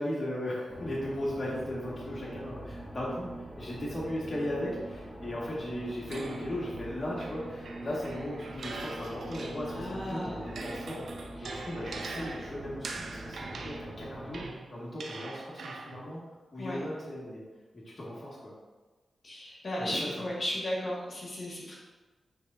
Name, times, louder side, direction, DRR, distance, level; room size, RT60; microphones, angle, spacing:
voice 1, 0.0-3.3 3.6-11.1 11.4-14.4 14.7-16.2 16.5-17.4 17.7-18.5 19.8-20.3, left 1 dB, 40° left, -6 dB, 1.9 m, -37 dB
sound 1, 0.7-14.5, right 1 dB, 5° right, 1.2 m, -43 dB
sound 2, 6.1-9.9 10.3-16.1, right 3 dB, 80° right, 0.6 m, -43 dB
voice 2, 9.7-10.5 11.4-11.7 12.1-12.3 16.6-16.8 19.2-21.7, left 1 dB, 55° left, -5 dB, 2.0 m, -35 dB
9.9 x 3.5 x 2.7 m, 1.2 s
cardioid pair, 55°, 0 cm